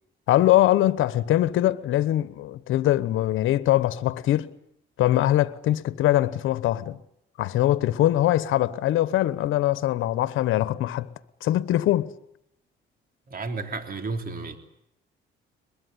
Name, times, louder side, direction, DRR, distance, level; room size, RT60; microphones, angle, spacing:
voice 1, 0.3-4.5 5.0-7.0 7.4-11.1 11.4-12.1, left 14 dB, 85° left, 1.1 m, -22 dB
voice 2, 13.3-14.6, right 3 dB, 45° right, 3.4 m, -32 dB
22.5 x 22.0 x 9.7 m
cardioid pair, 90°, 20 cm